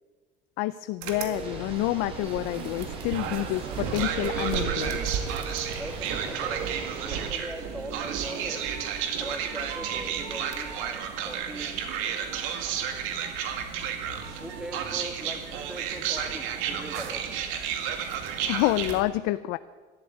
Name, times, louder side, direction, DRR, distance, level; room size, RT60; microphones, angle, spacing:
voice 1, 0.6-5.0 18.5-19.6, left 17 dB, 85° left, 13 dB, 0.5 m, -28 dB
sound 1, 1.0-19.0, right 8 dB, 80° right, 2.1 m, -32 dB
sound 2, 1.3-7.3, right 2 dB, 25° right, 3.5 m, -42 dB
voice 2, 5.7-8.6 9.2-11.8 14.3-17.8, right 1 dB, 5° right, 5 dB, 1.6 m, -41 dB
13.0 x 11.5 x 9.3 m, 1.5 s
cardioid pair, 175°, 20 cm